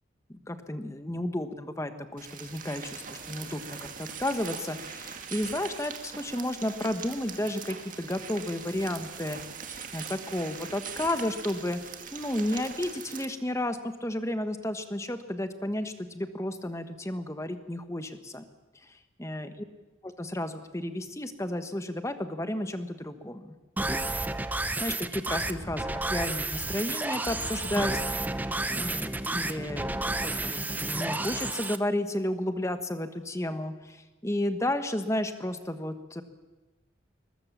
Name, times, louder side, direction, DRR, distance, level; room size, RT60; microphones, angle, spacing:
voice 1, 0.3-9.4 9.7-11.8 12.1-18.4 18.8-19.5 20.0-24.2 24.8-28.2 28.7-36.2, left 1 dB, 15° left, 9 dB, 1.3 m, -32 dB
sound 1, 2.2-13.3, right 6 dB, 40° right, 2.0 m, -41 dB
sound 2, 23.8-31.8, right 2 dB, 10° right, 0.7 m, -31 dB
22.0 x 21.0 x 7.4 m, 1.1 s
head